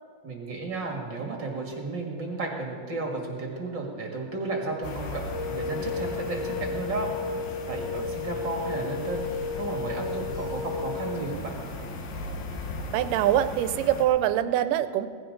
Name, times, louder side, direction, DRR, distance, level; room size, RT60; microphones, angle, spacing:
voice 1, 0.2-7.1 7.7-9.2 9.6-11.6, right 3 dB, 40° right, 0 dB, 2.0 m, -33 dB
sound 1, 4.8-14.1, left 2 dB, 85° left, 2.9 m, -37 dB
sound 2, 5.3-11.2, left 5 dB, 60° left, 1.3 m, -33 dB
voice 2, 12.9-15.1, right 12 dB, 80° right, 12 dB, 2.2 m, -24 dB
18.5 x 15.5 x 3.9 m, 2.1 s
omnidirectional pair, 3.8 m